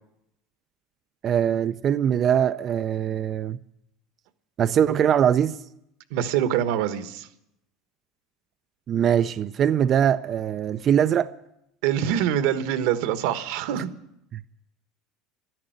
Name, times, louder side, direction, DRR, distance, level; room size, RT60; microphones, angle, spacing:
voice 1, 1.2-3.6 4.6-5.6 8.9-11.3 14.3-14.4, right 9 dB, 40° right, 0.5 m, -22 dB
voice 2, 6.1-7.3 11.8-13.9, right 10 dB, 70° right, 1.2 m, -24 dB
13.0 x 11.0 x 9.1 m
supercardioid pair, 105°, 0 cm